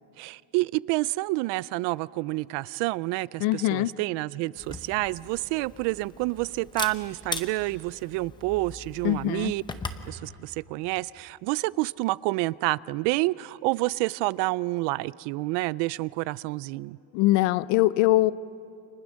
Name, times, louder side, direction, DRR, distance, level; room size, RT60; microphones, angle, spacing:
voice 1, 0.2-9.6 10.1-17.0, right 21 dB, 65° right, 21 dB, 0.5 m, -29 dB
voice 2, 3.4-3.9 9.0-9.5 17.1-18.3, left 17 dB, 80° left, 17 dB, 0.8 m, -22 dB
Camera, 4.6-10.1, left 3 dB, 10° left, 0.7 m, -39 dB
30.0 x 26.5 x 6.4 m, 2.8 s
cardioid pair, 175°, 46 cm